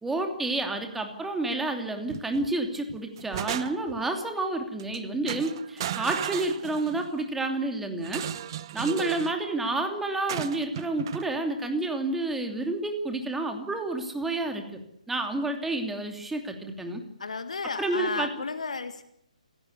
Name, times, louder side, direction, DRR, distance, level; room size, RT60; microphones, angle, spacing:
voice 1, 0.0-8.2 8.7-14.8 15.1-17.0 17.8-18.3, right 2 dB, 5° right, 4 dB, 2.9 m, -29 dB
sound 1, 2.1-2.5 2.9-4.0 4.8-5.0 5.3-7.1 8.0-9.4 10.3-11.3, right 11 dB, 35° right, 1.0 m, -35 dB
voice 2, 17.2-19.0, left 4 dB, 60° left, 11 dB, 1.7 m, -33 dB
27.5 x 17.0 x 8.3 m, 0.74 s
figure-of-eight pair, 135°, 4 cm